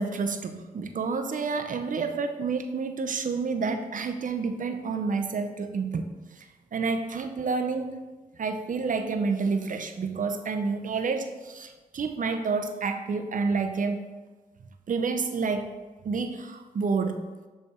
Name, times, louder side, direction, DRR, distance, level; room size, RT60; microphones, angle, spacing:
voice 1, 0.0-6.1 6.3-6.5 6.7-8.0 8.4-14.0 14.9-15.7 16.0-17.2, right 4 dB, 60° right, 7 dB, 0.6 m, -29 dB
6.5 x 3.4 x 4.3 m, 1.3 s
cardioid pair, 50°, 16 cm